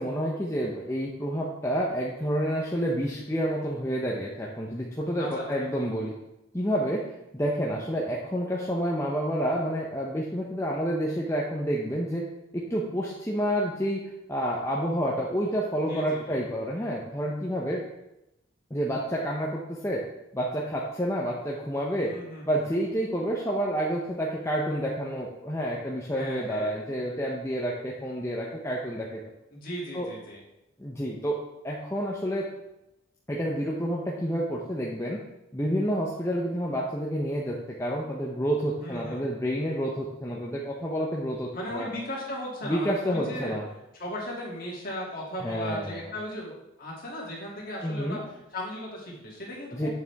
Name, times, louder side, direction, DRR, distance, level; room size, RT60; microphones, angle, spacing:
voice 1, 0.0-6.1 6.5-12.2 12.5-14.0 14.3-17.8 18.7-20.0 20.3-22.1 22.5-29.2 29.9-30.1 30.8-32.5 33.3-35.2 35.5-41.9 42.6-43.6 45.4-46.1 47.8-48.2 49.7-49.9, equal, 15° left, -3 dB, 0.7 m, -29 dB
voice 2, 5.2-5.7 15.9-16.4 22.0-22.6 26.1-26.7 29.5-30.4 38.8-39.2 41.5-43.5 44.0-48.2 48.5-49.9, left 1 dB, 45° left, -4 dB, 2.5 m, -37 dB
8.5 x 7.0 x 3.5 m, 0.90 s
head